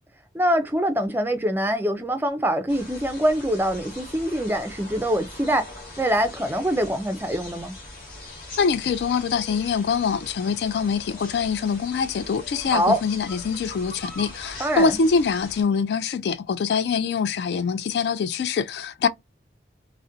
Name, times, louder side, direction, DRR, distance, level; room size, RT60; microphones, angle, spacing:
voice 1, 0.3-5.7 6.0-7.7 12.7-13.0 14.6-15.1, equal, 10° right, 0.4 m, -24 dB
sound 1, 2.7-15.6, left 1 dB, 50° left, 1.0 m, -41 dB
voice 2, 8.6-19.1, left 5 dB, 70° left, 0.3 m, -24 dB
2.5 x 2.1 x 2.6 m
head